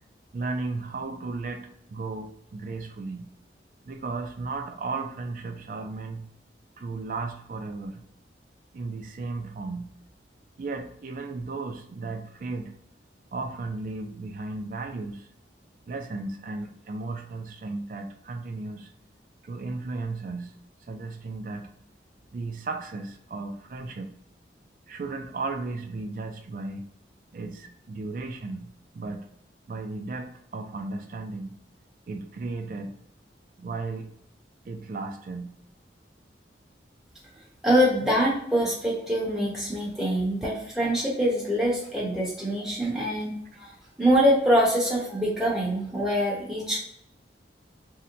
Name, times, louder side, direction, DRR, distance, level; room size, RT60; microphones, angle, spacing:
voice 1, 0.3-3.3 3.9-6.3 6.8-8.0 8.7-10.0 10.6-12.7 13.3-15.3 15.9-18.9 19.4-20.6 20.9-21.7 22.3-24.2 24.9-26.9 27.3-29.3 29.7-31.6 32.1-33.0 33.6-34.1 34.6-35.6, right 3 dB, 50° right, 0.4 m, -35 dB
voice 2, 37.6-46.8, equal, 5° right, 0.9 m, -24 dB
2.8 x 2.1 x 3.7 m
head